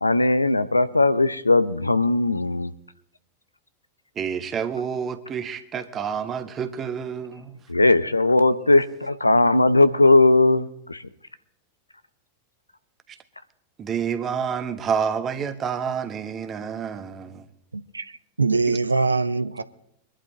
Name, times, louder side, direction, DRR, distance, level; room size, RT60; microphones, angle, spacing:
voice 1, 0.0-2.7 7.7-11.0, left 2 dB, 85° left, 0.6 m, -18 dB
voice 2, 4.1-7.6 13.1-13.2 13.8-17.5 18.7-18.8, right 7 dB, 25° right, 1.1 m, -29 dB
voice 3, 17.7-19.6, right 3 dB, 80° right, 0.5 m, -23 dB
24.0 x 11.5 x 3.2 m
figure-of-eight pair, 90°, 0 cm